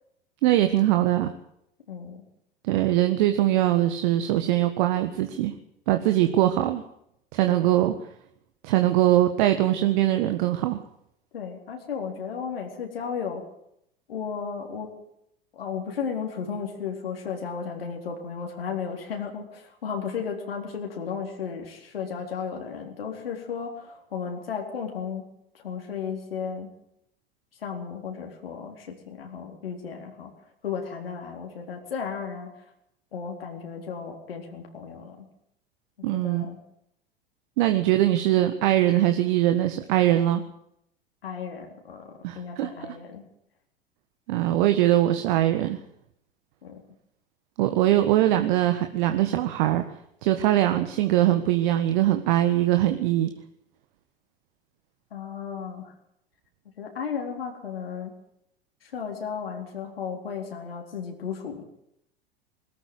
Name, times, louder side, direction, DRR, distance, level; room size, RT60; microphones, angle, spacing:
voice 1, 0.4-1.3 2.6-5.5 5.9-6.8 7.3-7.9 8.6-10.8 36.0-36.5 37.6-40.4 42.2-42.7 44.3-45.8 47.6-49.8 50.2-53.3, right 14 dB, 55° right, 7 dB, 1.7 m, -22 dB
voice 2, 1.9-2.3 7.5-7.6 11.3-13.4 14.1-14.9 15.5-25.2 25.5-26.7 27.6-30.3 30.6-32.5 33.1-35.3 36.1-36.6 41.2-43.2 46.6-46.8 55.1-55.9 56.8-58.1 58.8-61.6, left 6 dB, 75° left, 2 dB, 4.1 m, -34 dB
21.0 x 14.0 x 9.6 m, 0.75 s
figure-of-eight pair, 85°, 30 cm